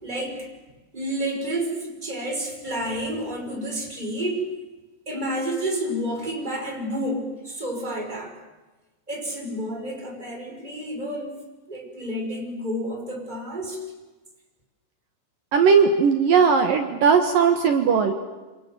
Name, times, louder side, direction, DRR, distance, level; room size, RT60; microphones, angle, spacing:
voice 1, 0.0-0.5 0.9-4.5 5.1-8.3 9.1-13.8, right 1 dB, 10° right, 1 dB, 5.3 m, -30 dB
voice 2, 15.5-18.1, right 6 dB, 60° right, 6 dB, 2.8 m, -18 dB
28.5 x 27.0 x 7.7 m, 1.2 s
omnidirectional pair, 5.1 m